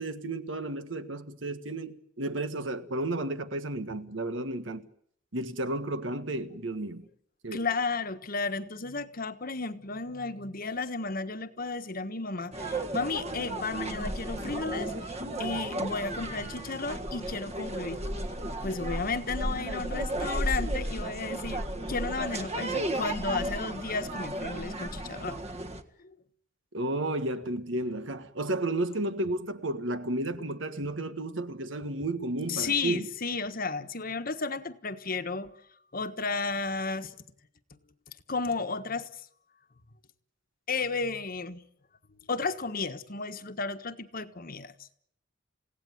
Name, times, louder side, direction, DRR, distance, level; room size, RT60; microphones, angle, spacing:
voice 1, 0.0-4.9 5.3-7.1 7.4-7.6 26.7-33.1, right 2 dB, 75° right, 1.7 m, -32 dB
voice 2, 7.5-18.0 18.6-25.4 26.0-26.1 32.5-35.5 35.9-37.2 38.3-39.1 40.7-41.6 42.3-44.9, left 4 dB, 45° left, 1.4 m, -33 dB
sound 1, 12.5-25.8, right 1 dB, 35° right, 1.7 m, -34 dB
29.5 x 17.0 x 9.6 m
head